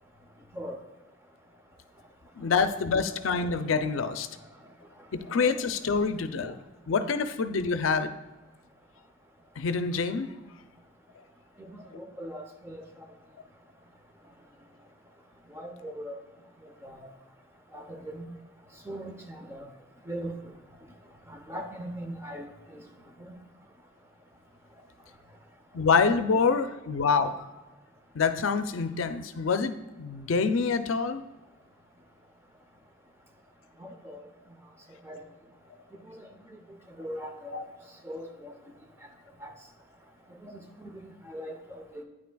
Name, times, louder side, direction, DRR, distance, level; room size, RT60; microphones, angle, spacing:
voice 1, 2.4-4.3 5.1-6.6 6.9-8.1 9.6-10.3 25.7-27.4 28.1-31.2, left 5 dB, 85° left, 10 dB, 0.5 m, -26 dB
voice 2, 11.6-12.8 15.5-16.1 16.8-17.0 17.7-18.2 18.9-19.7 20.1-20.3 21.3-22.8 23.2-23.3 33.8-34.2 35.0-35.2 36.1-36.2 37.0-37.6 38.0-38.5 39.4-39.5 40.4-40.5 40.8-42.0, equal, 10° right, 3 dB, 0.7 m, -40 dB
9.3 x 5.8 x 2.3 m, 1.1 s
head